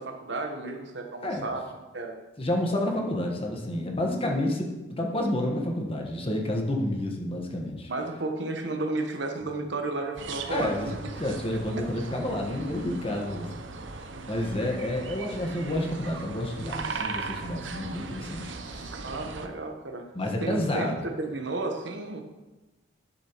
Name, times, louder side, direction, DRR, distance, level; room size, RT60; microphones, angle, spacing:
voice 1, 0.0-1.6 1.9-2.2 7.9-11.0 11.7-11.8 14.3-14.4 19.0-20.1 20.4-22.2, right 2 dB, 70° right, 4 dB, 1.1 m, -33 dB
voice 2, 2.4-7.9 10.5-10.9 11.2-13.6 14.3-19.0 20.1-21.0, left 1 dB, 30° left, 1 dB, 1.4 m, -30 dB
sound 1, 10.2-19.5, right 4 dB, 90° right, 0.8 m, -38 dB
12.0 x 7.2 x 3.0 m, 1.1 s
head